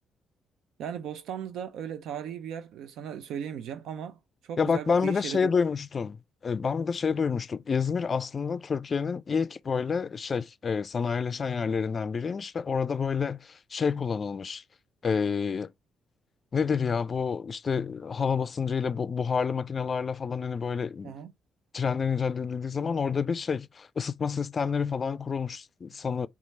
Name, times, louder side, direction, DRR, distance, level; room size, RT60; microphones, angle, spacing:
voice 1, 0.8-5.5 21.0-21.3, right 8 dB, 80° right, 0.4 m, -37 dB
voice 2, 4.6-14.6 15.0-15.7 16.5-21.1 21.7-26.3, left 6 dB, 40° left, 0.3 m, -28 dB
4.4 x 2.4 x 4.1 m
cardioid pair, 90°, 0 cm